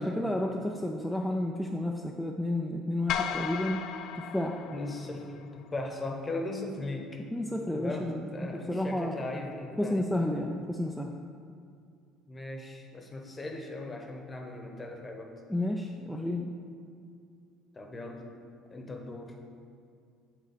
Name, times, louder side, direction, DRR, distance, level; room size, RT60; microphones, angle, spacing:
voice 1, 0.0-3.8 4.1-4.6 7.3-9.3 9.8-11.1 15.5-16.5, left 1 dB, ahead, 0 dB, 0.4 m, -31 dB
sound 1, 3.1-5.5, left 8 dB, 65° left, 0.3 m, -35 dB
voice 2, 4.7-7.2 7.7-10.0 12.3-15.3 17.7-18.3 18.7-19.4, left 2 dB, 25° left, 3 dB, 1.0 m, -38 dB
6.5 x 3.9 x 5.0 m, 2.3 s
supercardioid pair, 85°, 0 cm